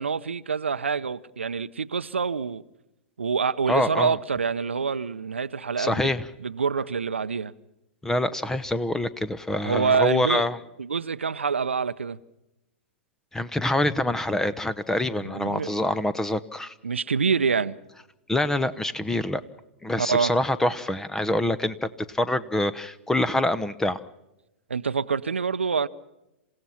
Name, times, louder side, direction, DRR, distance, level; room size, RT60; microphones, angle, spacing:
voice 1, 0.0-2.6 3.2-6.1 6.4-7.5 9.6-10.5 10.8-12.2 15.2-15.7 16.8-17.8 20.0-20.3 24.7-25.9, right 5 dB, 85° right, 0.7 m, -26 dB
voice 2, 3.7-4.1 5.8-6.3 8.0-10.6 13.3-16.7 18.3-19.4 19.8-24.0, left 1 dB, 5° left, 0.9 m, -25 dB
28.0 x 16.5 x 5.8 m
hypercardioid pair, 110°, 6 cm